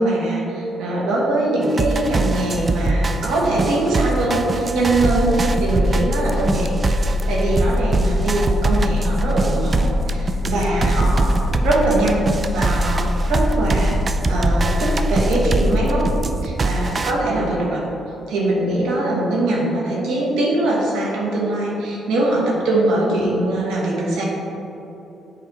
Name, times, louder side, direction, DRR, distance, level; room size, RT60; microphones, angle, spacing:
voice 1, 0.0-6.7 7.0-12.2 12.5-16.1 16.4-17.8 18.3-24.2, right 1 dB, 90° right, -3 dB, 1.3 m, -22 dB
sound 1, 1.6-17.1, right 2 dB, 35° right, 0.4 m, -23 dB
sound 2, 4.9-16.2, left 2 dB, 55° left, 1.3 m, -24 dB
7.7 x 3.3 x 5.2 m, 2.9 s
cardioid pair, 90°, 0 cm